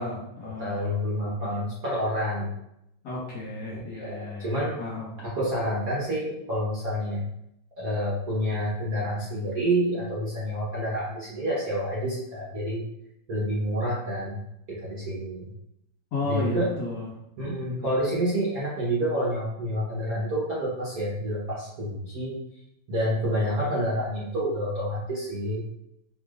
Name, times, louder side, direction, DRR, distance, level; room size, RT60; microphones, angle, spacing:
voice 1, 0.0-1.0 1.4-1.6 3.0-5.2 16.1-17.1 17.7-17.9, left 2 dB, 55° left, -6 dB, 1.8 m, -33 dB
voice 2, 0.6-2.5 3.7-4.8 5.2-7.2 7.8-12.8 13.3-14.4 14.7-15.5 16.2-16.7 17.4-22.4 22.9-25.6, equal, 50° right, -6 dB, 1.2 m, -28 dB
4.6 x 3.6 x 2.4 m, 0.81 s
omnidirectional pair, 2.4 m